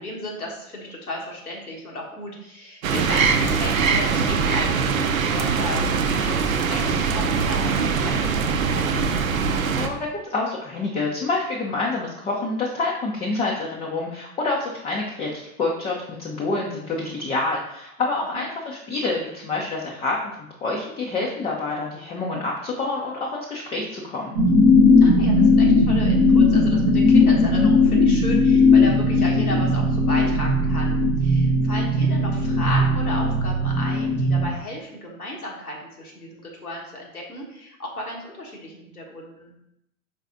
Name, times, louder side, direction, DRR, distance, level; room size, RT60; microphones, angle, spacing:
voice 1, 0.0-9.0 25.0-39.5, left 1 dB, 85° left, -2 dB, 1.3 m, -34 dB
sound 1, 2.8-9.9, right 5 dB, 70° right, 0.6 m, -22 dB
voice 2, 9.7-24.3, left 3 dB, 15° left, -3 dB, 0.5 m, -27 dB
sound 2, 24.4-34.5, left 2 dB, 50° right, 0.9 m, -18 dB
4.9 x 3.9 x 2.5 m, 0.80 s
figure-of-eight pair, 90°, 43 cm